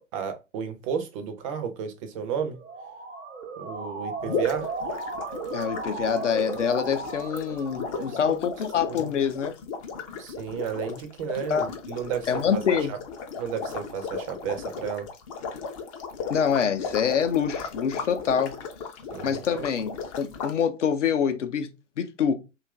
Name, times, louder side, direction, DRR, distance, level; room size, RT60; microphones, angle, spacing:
voice 1, 0.1-2.6 3.6-4.7 7.9-8.4 8.9-9.0 10.2-13.0 13.4-15.1 19.1-19.7, right 7 dB, 25° right, 0.4 m, -33 dB
Motor vehicle (road) / Siren, 2.5-8.3, right 4 dB, 85° right, 0.8 m, -35 dB
sound 1, 4.2-20.5, left 5 dB, 30° left, 0.4 m, -36 dB
voice 2, 5.5-9.6 11.5-11.7 12.3-12.9 16.3-18.6 19.2-21.7 22.0-22.3, left 7 dB, 70° left, 0.6 m, -25 dB
2.8 x 2.5 x 3.3 m
figure-of-eight pair, 105°, 38 cm